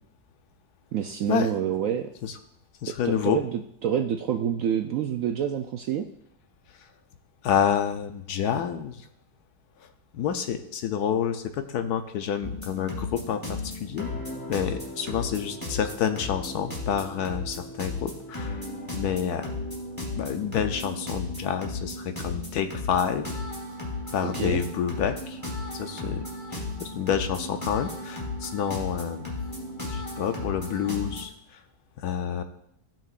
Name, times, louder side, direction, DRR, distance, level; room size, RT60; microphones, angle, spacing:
voice 1, 0.9-2.1 3.0-6.0 24.2-24.7, right 9 dB, 70° right, 4 dB, 0.8 m, -27 dB
voice 2, 2.8-3.4 7.4-9.1 10.1-14.1 14.5-18.6 18.9-19.5 20.2-23.4 24.1-25.4 25.7-26.2 26.5-29.4 29.9-31.3 32.0-32.4, left 8 dB, 70° left, 8 dB, 1.1 m, -28 dB
sound 1, 12.4-31.2, left 2 dB, 10° left, 2.4 m, -35 dB
17.0 x 6.0 x 2.5 m, 0.73 s
omnidirectional pair, 1.8 m